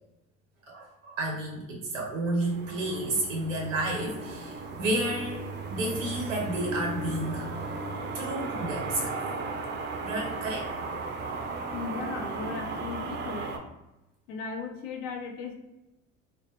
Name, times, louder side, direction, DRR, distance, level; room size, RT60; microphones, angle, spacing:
voice 1, 0.7-7.8 8.1-9.2 10.0-10.7, right 1 dB, 90° right, -1 dB, 0.6 m, -31 dB
sound 1, 2.4-13.6, right 3 dB, 30° right, 0.4 m, -36 dB
voice 2, 11.7-13.5 14.3-15.6, left 5 dB, 55° left, 3 dB, 0.6 m, -37 dB
2.1 x 2.0 x 2.9 m, 0.95 s
hypercardioid pair, 65°, 37 cm